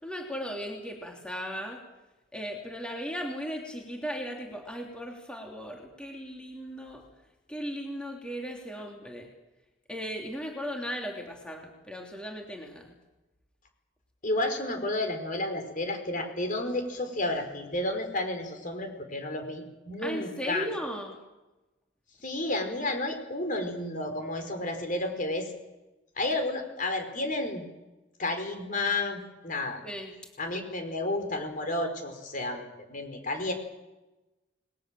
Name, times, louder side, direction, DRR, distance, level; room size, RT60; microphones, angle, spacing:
voice 1, 0.0-1.8 2.3-7.0 7.5-9.3 9.9-12.9 20.0-21.2 29.8-30.1, equal, 5° left, 0 dB, 3.2 m, -37 dB
voice 2, 14.2-20.7 22.2-25.5 26.2-27.6 28.2-29.8 30.4-33.5, left 2 dB, 45° left, 6 dB, 5.0 m, -31 dB
29.0 x 21.0 x 7.8 m, 1.0 s
head